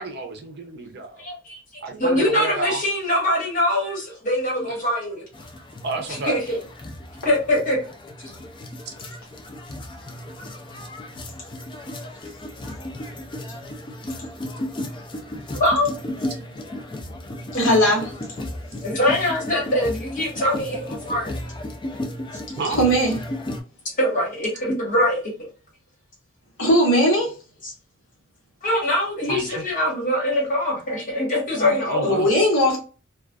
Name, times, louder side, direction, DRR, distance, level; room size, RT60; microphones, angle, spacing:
voice 1, 0.0-1.2 1.8-2.9 4.7-4.8 5.8-6.4 8.9-9.0 22.6-22.9 29.3-29.6 31.8-32.3, right 3 dB, 55° right, 0.6 m, -30 dB
voice 2, 1.2-5.2 6.2-6.6 7.2-7.8 15.5-15.9 17.5-17.7 18.8-21.3 24.0-25.3 27.6-27.7 28.6-32.2, left 1 dB, 40° left, 1.4 m, -23 dB
sound 1, 5.3-23.6, left 1 dB, 25° left, 0.4 m, -34 dB
voice 3, 17.6-18.0 22.8-23.1 26.6-27.3 31.5-31.7 32.0-32.8, equal, 70° left, 1.0 m, -18 dB
2.3 x 2.3 x 2.2 m
head